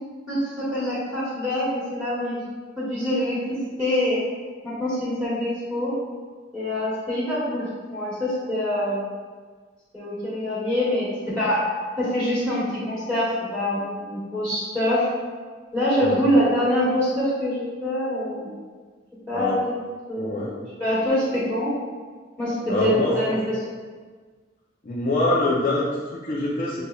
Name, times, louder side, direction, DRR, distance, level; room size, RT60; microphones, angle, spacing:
voice 1, 0.3-1.6 1.9-2.4 2.8-4.2 4.6-5.9 6.5-9.1 9.9-11.6 12.0-15.1 15.7-18.5 19.3-19.5 20.1-20.5 20.8-21.7 22.4-23.5, left 1 dB, 5° left, -10 dB, 1.3 m, -25 dB
voice 2, 20.2-20.5 22.7-23.3 24.8-26.9, left 1 dB, 45° left, -5 dB, 0.6 m, -25 dB
6.3 x 2.9 x 2.3 m, 1.5 s
head